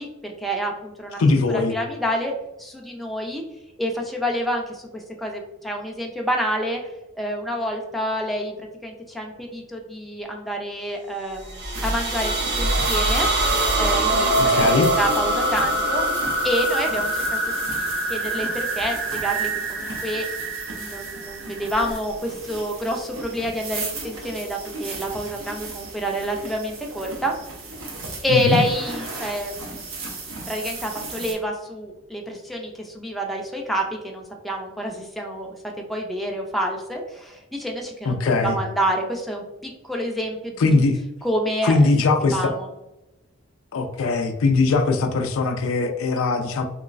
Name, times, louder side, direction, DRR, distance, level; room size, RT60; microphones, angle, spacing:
voice 1, 0.0-1.2 1.5-2.3 2.6-3.4 3.8-13.3 13.8-16.1 16.4-20.3 20.8-27.3 28.2-29.6 30.5-35.5 35.9-40.7 41.2-41.8 42.3-42.7, equal, ahead, 0 dB, 0.4 m, -28 dB
voice 2, 1.2-1.7 14.4-14.9 28.3-28.6 38.0-38.6 40.6-41.0 41.6-42.5 43.7-46.6, left 3 dB, 80° left, 6 dB, 0.4 m, -20 dB
sound 1, 11.4-22.0, right 1 dB, 60° right, 0.5 m, -24 dB
sound 2, 11.7-31.3, right 3 dB, 85° right, 0.8 m, -36 dB
3.1 x 3.0 x 2.4 m, 0.95 s
head